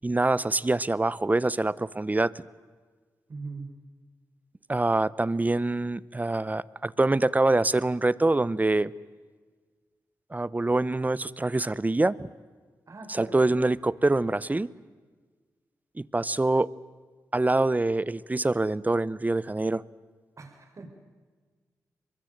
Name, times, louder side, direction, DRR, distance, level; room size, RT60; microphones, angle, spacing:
voice 1, 0.0-2.3 4.7-8.9 10.3-12.3 13.1-14.7 16.0-16.7 17.3-19.8, right 2 dB, 25° right, 21 dB, 0.8 m, -25 dB
voice 2, 3.3-3.7 12.9-13.4 20.4-20.9, right 3 dB, 50° right, 4 dB, 5.3 m, -40 dB
24.0 x 21.5 x 9.1 m, 1.5 s
supercardioid pair, 45°, 7 cm